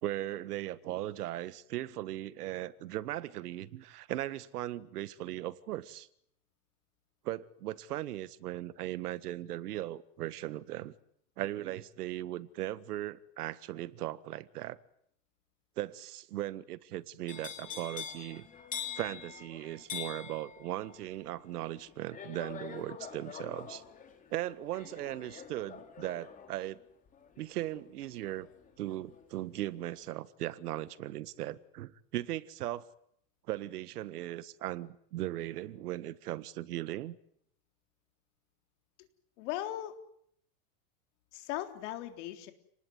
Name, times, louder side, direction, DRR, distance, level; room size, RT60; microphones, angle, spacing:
voice 1, 0.0-6.1 7.2-10.9 11.4-14.8 15.8-18.5 18.9-23.8 24.3-26.8 27.4-28.5 28.8-32.9 33.5-37.2, right 14 dB, 85° right, 1.7 m, -38 dB
sound 1, 17.3-29.2 29.6-30.0, left 7 dB, 15° left, 3.3 m, -45 dB
voice 2, 39.4-39.9 41.3-42.5, left 13 dB, 50° left, 3.8 m, -38 dB
29.5 x 20.0 x 9.5 m
supercardioid pair, 165°, 45 cm